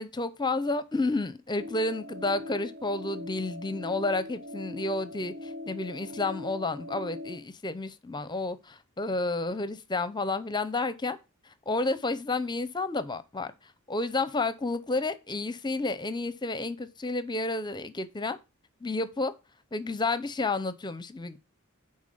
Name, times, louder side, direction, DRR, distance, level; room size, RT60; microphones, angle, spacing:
voice 1, 0.0-11.2 11.4-18.4 18.8-19.3 19.7-21.4, left 2 dB, 20° left, 0.7 m, -31 dB
sound 1, 1.6-7.4, left 2 dB, 70° right, 2.5 m, -41 dB
10.0 x 4.1 x 5.5 m
head